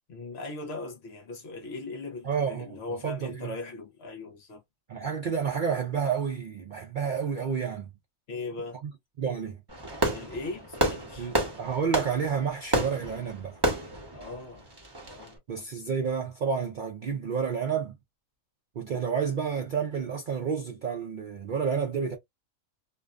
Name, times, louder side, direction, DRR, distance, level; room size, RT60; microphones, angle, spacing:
voice 1, 0.1-4.6 8.3-8.8 10.1-11.3 14.1-14.7 15.1-15.4, left 3 dB, 55° left, 0.9 m, -39 dB
voice 2, 2.2-2.8 3.0-3.6 4.9-7.9 8.8-8.9 9.2-9.6 11.2-13.6 15.5-18.0 18.8-22.2, right 6 dB, 60° right, 0.5 m, -30 dB
Fireworks, 9.7-15.3, right 1 dB, 20° right, 0.9 m, -30 dB
2.6 x 2.2 x 2.4 m
omnidirectional pair, 1.5 m